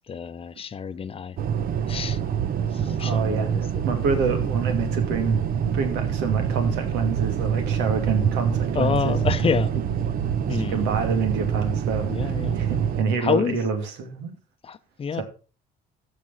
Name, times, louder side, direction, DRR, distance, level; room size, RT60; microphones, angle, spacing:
voice 1, 0.1-1.4 1.9-2.2 2.7-3.6 8.7-9.7 10.5-10.9 12.1-12.6 13.2-13.6 14.6-15.2, left 6 dB, 35° left, 0.8 m, -27 dB
sound 1, 1.4-13.0, right 8 dB, 60° right, 1.0 m, -26 dB
voice 2, 2.8-9.2 10.5-14.3 15.1-15.2, right 5 dB, 90° right, 2.6 m, -27 dB
14.0 x 5.2 x 5.7 m
cardioid pair, 110°, 17 cm